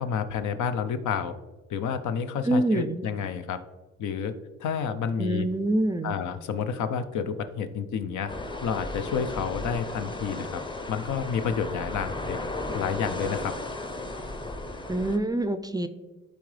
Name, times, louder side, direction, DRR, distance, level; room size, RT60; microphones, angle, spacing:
voice 1, 0.0-1.3 1.7-3.6 4.0-5.5 6.0-8.3 8.6-10.6 10.9-12.4 12.7-13.6, left 7 dB, 75° left, 9 dB, 0.7 m, -30 dB
voice 2, 2.4-3.0 5.2-6.2 14.9-15.9, right 1 dB, 15° right, 11 dB, 0.4 m, -26 dB
sound 1, 8.3-15.2, left 2 dB, 15° left, 0.7 m, -35 dB
11.5 x 4.0 x 3.2 m, 1.2 s
cardioid pair, 90°, 30 cm